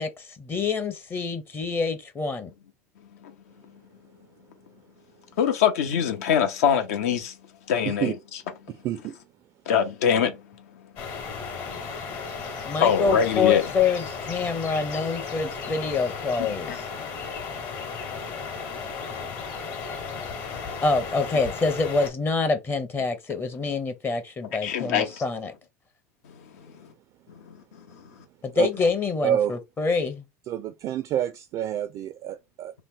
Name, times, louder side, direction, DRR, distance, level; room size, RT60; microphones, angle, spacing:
voice 1, 0.0-2.5 12.6-16.8 20.8-25.5 28.4-30.2, left 4 dB, 25° left, 0.6 m, -26 dB
voice 2, 5.4-7.3 7.7-8.1 9.7-10.3 12.8-13.6 16.4-16.8 24.6-25.1 27.7-27.8, left 8 dB, 75° left, 0.6 m, -23 dB
voice 3, 8.8-9.2 28.5-28.7 29.2-29.5 30.5-32.8, right 11 dB, 45° right, 0.3 m, -28 dB
sound 1, 11.0-22.1, left 5 dB, 50° left, 1.1 m, -35 dB
2.8 x 2.1 x 3.5 m
hypercardioid pair, 90°, 8 cm